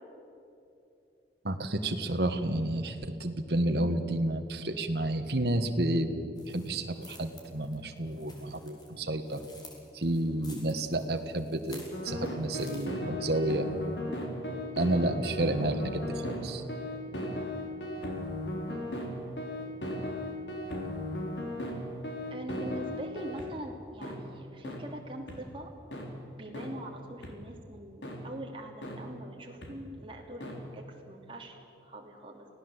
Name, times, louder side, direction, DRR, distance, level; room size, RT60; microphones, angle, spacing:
voice 1, 1.4-9.4 9.9-13.7 14.7-16.6, right 1 dB, 65° right, 6 dB, 1.5 m, -30 dB
sound 1, 6.4-12.9, left 2 dB, 25° left, 3.9 m, -53 dB
sound 2, 11.9-23.5 24.0-24.2 24.6-24.8 25.3-25.4 25.9-26.1 26.5-26.7 27.2-27.3 28.0-28.2 28.8-29.0 29.6-29.7 30.4-30.5, left 1 dB, 85° left, 3.9 m, -36 dB
voice 2, 22.3-25.7 26.3-32.5, right 1 dB, 30° right, 0 dB, 2.9 m, -43 dB
25.5 x 17.0 x 8.0 m, 2.7 s
head